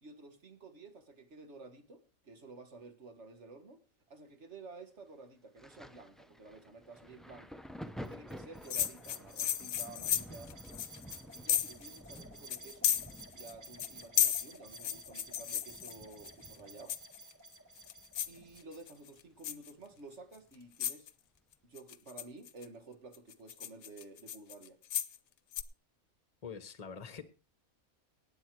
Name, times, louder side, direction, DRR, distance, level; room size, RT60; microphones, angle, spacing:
voice 1, 0.0-3.8 4.1-7.6 8.1-10.6 11.3-12.9 13.3-17.0 18.3-21.1 21.6-24.8, right 3 dB, 50° right, 1.9 m, -52 dB
Thunder, 5.6-18.9 19.2-20.5 21.4-21.5, equal, ahead, 0.5 m, -52 dB
sound 1, 8.0-19.1, right 2 dB, 35° right, 1.8 m, -54 dB
sound 2, 8.7-11.9 12.2-12.3 12.5-13.5 13.8-16.3 16.9-17.3 17.8-18.4 18.7-19.1 19.4-19.7 20.3-20.4 20.8-21.1 21.8-22.7 23.1-25.2 25.5-25.6, left 10 dB, 75° left, 1.2 m, -33 dB
voice 2, 26.4-27.2, left 6 dB, 30° left, 1.2 m, -44 dB
18.0 x 8.4 x 4.7 m
omnidirectional pair, 1.5 m